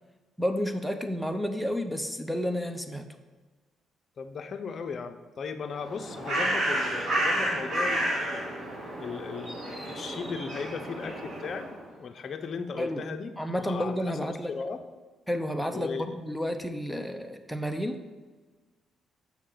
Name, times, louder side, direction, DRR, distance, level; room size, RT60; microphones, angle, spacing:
voice 1, 0.4-3.1 12.8-13.1 13.4-14.6 15.3-18.0, equal, ahead, 6 dB, 0.7 m, -31 dB
voice 2, 4.2-8.5 9.0-11.7 12.0-13.3 13.6-14.8 15.7-16.2, left 5 dB, 50° left, 7 dB, 0.7 m, -37 dB
Bird, 5.7-11.8, right 1 dB, 65° right, 2.6 m, -31 dB
7.2 x 6.3 x 3.9 m, 1.3 s
cardioid pair, 90°, 0 cm